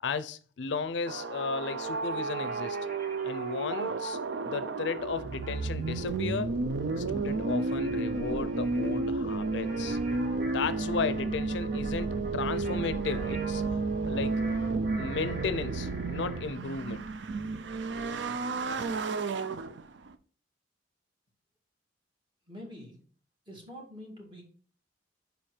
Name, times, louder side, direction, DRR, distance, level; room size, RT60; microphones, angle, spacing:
voice 1, 0.0-2.8 3.2-4.2 4.4-6.5 7.0-10.0 10.5-13.6 14.0-14.4 15.0-17.0, left 4 dB, 65° left, 0.5 m, -34 dB
sound 1, 1.1-20.2, right 3 dB, 65° right, 0.5 m, -32 dB
sound 2, 1.8-3.8 5.4-16.5, right 1 dB, 50° right, 2.0 m, -47 dB
voice 2, 22.5-23.0 23.5-24.4, equal, 25° right, 2.0 m, -45 dB
5.4 x 4.4 x 4.8 m
head